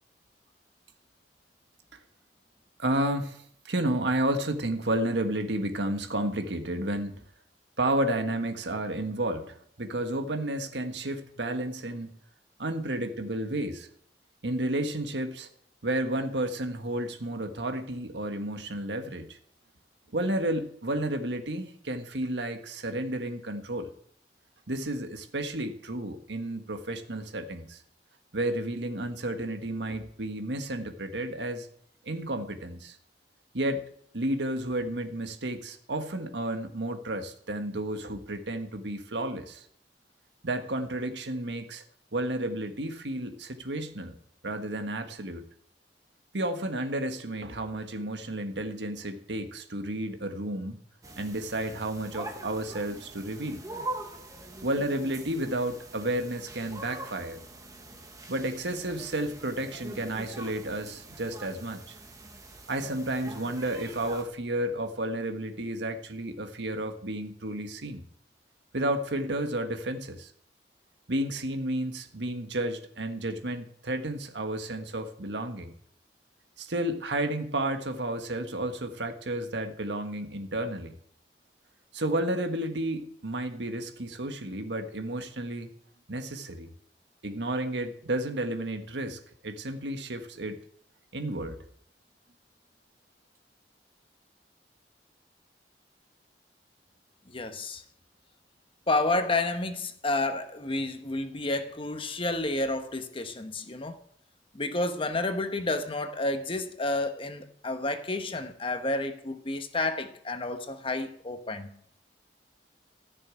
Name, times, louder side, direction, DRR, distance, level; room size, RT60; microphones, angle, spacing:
voice 1, 2.8-7.2 7.8-12.2 12.6-13.9 14.4-15.5 15.8-19.4 20.1-23.9 24.7-27.8 28.3-31.7 32.1-33.0 33.5-33.8 34.1-39.7 40.4-41.8 42.1-44.1 44.4-45.4 46.3-50.8 51.2-53.6 54.6-57.4 58.3-61.8 62.7-68.0 68.7-70.3 71.1-75.7 76.6-80.9 81.9-85.7 86.1-86.7 87.2-90.6 91.1-91.6, right 1 dB, 85° right, 1.5 m, -32 dB
sound 1, 51.0-64.2, right 2 dB, 20° right, 1.5 m, -43 dB
voice 2, 97.3-97.8 98.9-104.0 104.5-111.7, left 2 dB, 30° left, 1.1 m, -30 dB
14.5 x 6.7 x 8.9 m
head